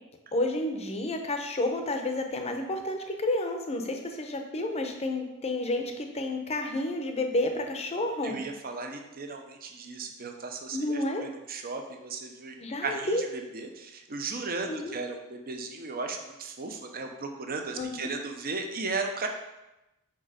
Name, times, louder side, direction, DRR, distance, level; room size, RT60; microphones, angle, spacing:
voice 1, 0.3-8.4 10.7-11.2 12.6-13.2 14.7-14.9 17.8-18.1, left 1 dB, 30° left, 4 dB, 0.7 m, -30 dB
voice 2, 8.2-12.6 12.8-19.3, right 3 dB, 40° right, 4 dB, 0.7 m, -36 dB
4.9 x 4.6 x 4.9 m, 0.96 s
head